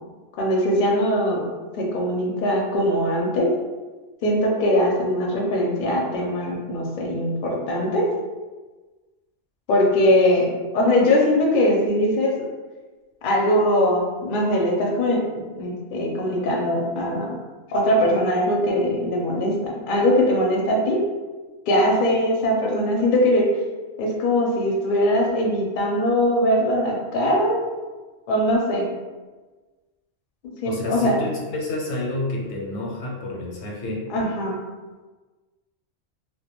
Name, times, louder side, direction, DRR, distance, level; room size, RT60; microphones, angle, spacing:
voice 1, 0.4-1.4 1.7-3.5 4.2-8.1 9.7-12.3 13.2-15.2 15.6-17.3 17.7-21.0 21.7-23.5 24.0-27.6 28.3-28.9 30.4-31.2 34.1-34.6, left 1 dB, 60° left, -1 dB, 0.6 m, -21 dB
voice 2, 30.6-34.1, left 2 dB, 85° left, -2 dB, 0.9 m, -29 dB
2.2 x 2.2 x 2.9 m, 1.3 s
omnidirectional pair, 1.2 m